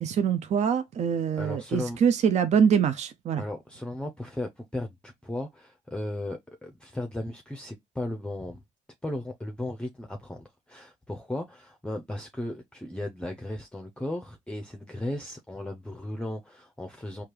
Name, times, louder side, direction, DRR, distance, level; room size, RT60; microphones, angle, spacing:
voice 1, 0.0-3.4, right 7 dB, 45° right, 0.4 m, -24 dB
voice 2, 1.4-2.0 3.4-8.6 9.0-17.2, left 1 dB, 5° left, 0.6 m, -36 dB
4.3 x 2.4 x 3.2 m
hypercardioid pair, 50°, 16 cm